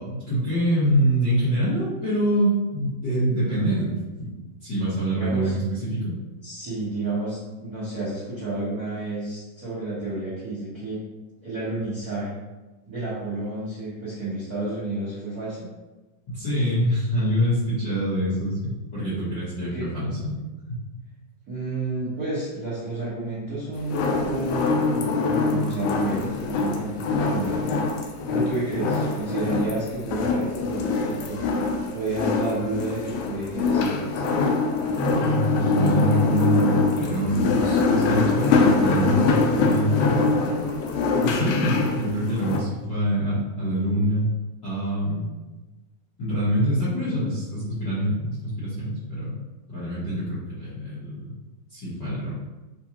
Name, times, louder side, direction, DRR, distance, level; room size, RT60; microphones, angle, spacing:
voice 1, 0.0-4.3 4.6-6.1 16.3-20.4 20.7-20.8 35.2-40.2 41.3-44.3 44.6-45.3 46.2-49.3 49.7-51.3 51.7-52.3, equal, 55° left, -11 dB, 1.2 m, -25 dB
voice 2, 5.1-5.5 6.4-11.1 11.4-12.4 12.9-15.7 19.6-19.9 21.5-27.8 28.3-31.4 31.9-34.2 41.1-41.6, right 2 dB, 65° right, -11 dB, 0.9 m, -30 dB
sound 1, 23.8-42.6, left 3 dB, 80° left, 1.8 m, -24 dB
6.8 x 2.4 x 2.9 m, 1.1 s
omnidirectional pair, 3.9 m